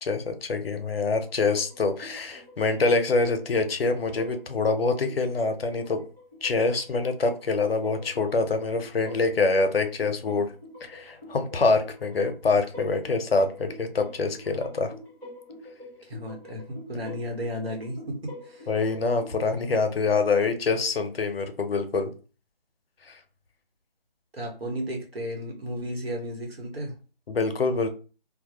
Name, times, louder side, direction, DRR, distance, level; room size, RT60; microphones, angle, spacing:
voice 1, 0.0-6.0 6.4-10.5 10.8-14.9 18.7-22.1 23.1-23.2 27.3-27.9, left 3 dB, 80° left, 7 dB, 0.6 m, -25 dB
sound 1, 1.2-19.3, left 1 dB, 10° right, 0.7 m, -46 dB
voice 2, 16.0-18.7 24.3-26.9, equal, 90° right, 1 dB, 1.1 m, -34 dB
2.2 x 2.0 x 2.8 m, 0.35 s
figure-of-eight pair, 160°, 29 cm